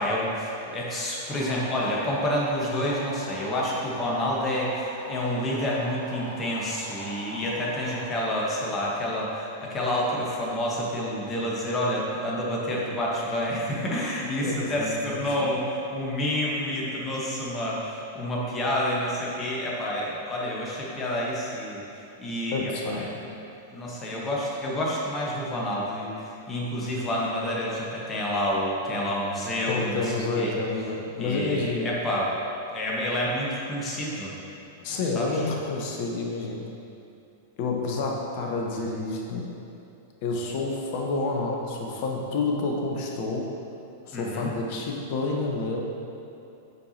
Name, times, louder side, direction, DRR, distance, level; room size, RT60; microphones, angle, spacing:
voice 1, 0.0-21.8 22.2-23.0 23.7-30.6 31.1-32.3 32.7-34.3 35.1-35.4 44.1-44.5, equal, 25° left, -4 dB, 1.1 m, -29 dB
sound 1, 1.3-8.1, equal, 90° left, 0.9 m, -41 dB
voice 2, 14.4-15.5 22.5-23.1 29.7-31.9 34.8-36.7 37.6-39.5 40.2-43.5 44.1-45.8, left 3 dB, 50° left, 0 dB, 0.9 m, -29 dB
8.1 x 4.7 x 2.8 m, 2.8 s
figure-of-eight pair, 95°, 0 cm